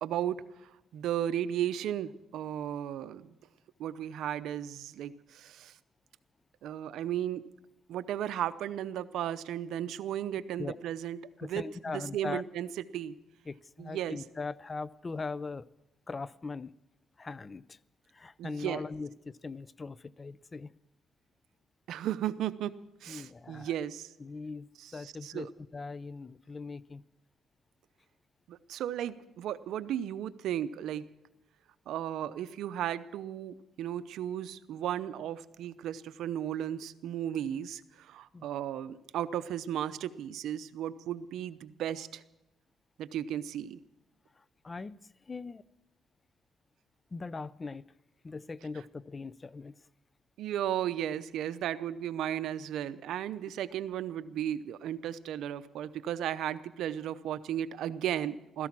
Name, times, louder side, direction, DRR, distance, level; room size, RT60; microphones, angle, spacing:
voice 1, 0.0-3.3 3.8-5.8 6.6-7.4 7.9-12.7 12.9-13.1 13.8-14.2 18.4-18.8 21.9-22.7 23.0-24.1 24.8-25.5 28.5-31.0 31.9-42.2 43.0-43.8 50.4-58.7, right 11 dB, 80° right, 13 dB, 0.7 m, -35 dB
voice 2, 11.4-12.4 13.5-15.7 16.1-16.7 17.2-17.8 18.1-20.7 23.1-23.8 24.2-27.0 38.3-38.5 44.4-45.0 45.3-45.6 47.1-47.9 48.2-49.8, left 4 dB, 30° left, 19 dB, 0.5 m, -40 dB
16.0 x 14.0 x 6.0 m, 0.90 s
cardioid pair, 90°, 0 cm